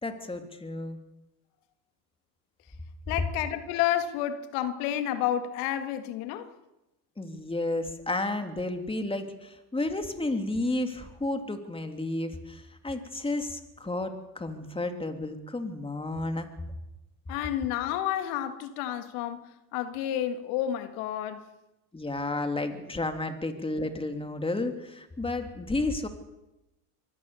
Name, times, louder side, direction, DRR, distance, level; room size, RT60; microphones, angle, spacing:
voice 1, 0.0-1.0 7.2-16.5 21.9-26.1, left 2 dB, 10° left, 2.9 m, -32 dB
voice 2, 3.1-6.5 17.3-19.4 19.7-21.4, left 11 dB, 80° left, 1.9 m, -30 dB
24.0 x 17.5 x 7.0 m
supercardioid pair, 90°, 43 cm